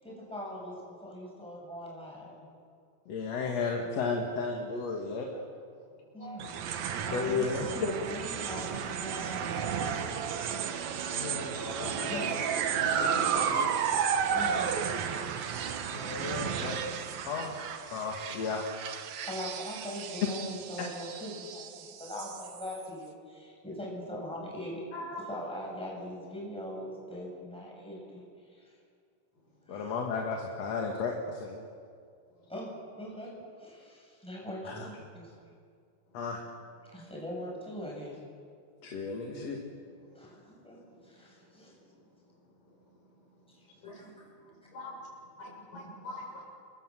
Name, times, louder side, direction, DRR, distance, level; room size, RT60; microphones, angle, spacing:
voice 1, 0.0-2.4 6.1-11.6 12.1-12.4 14.3-14.7 19.3-24.8 25.1-28.7 29.7-30.0 32.5-33.3 33.6-35.3 36.9-38.2 40.1-41.7 43.5-43.6 43.9-44.0, equal, ahead, -3 dB, 7.5 m, -42 dB
voice 2, 3.1-5.4 7.1-7.9 11.1-12.4 12.7-13.7 15.9-16.8 17.3-17.6 17.9-18.7 29.7-31.6 34.6-34.9 36.1-36.4 38.8-39.6, left 4 dB, 50° left, 1 dB, 2.9 m, -34 dB
sound 1, 6.4-22.9, right 7 dB, 60° right, 2.3 m, -33 dB
voice 3, 45.4-46.4, left 2 dB, 70° left, -2 dB, 8.1 m, -42 dB
29.0 x 22.5 x 7.6 m, 2.2 s
omnidirectional pair, 4.0 m